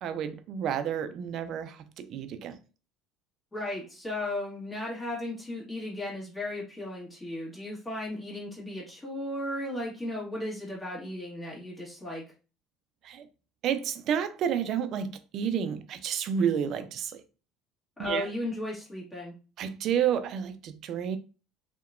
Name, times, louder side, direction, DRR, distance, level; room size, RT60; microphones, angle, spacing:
voice 1, 0.0-2.6 10.1-10.2 13.0-13.2 13.6-17.2 18.0-18.3 19.6-21.2, right 8 dB, 55° right, 0.3 m, -30 dB
voice 2, 3.5-12.2 18.0-19.3, left 1 dB, 15° left, 1.2 m, -35 dB
2.8 x 2.1 x 2.4 m
supercardioid pair, 95°, 0 cm